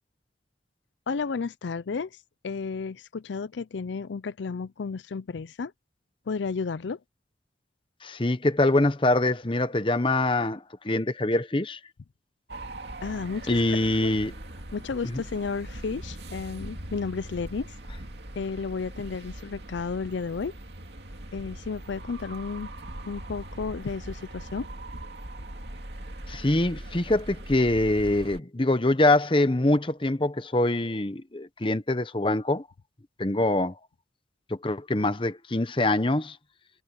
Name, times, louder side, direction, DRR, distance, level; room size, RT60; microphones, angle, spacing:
voice 1, 1.1-5.7 6.3-7.0 13.0-13.6 14.0-14.1 14.7-17.7 18.4-20.5 21.3-22.7 23.1-24.7, left 5 dB, 80° left, 0.5 m, -32 dB
voice 2, 8.0-11.8 13.5-14.3 15.0-15.2 26.3-32.7 33.2-33.7 34.5-36.4, left 2 dB, 30° left, 0.9 m, -24 dB
sound 1, 12.5-28.4, right 1 dB, 65° right, 2.6 m, -41 dB
head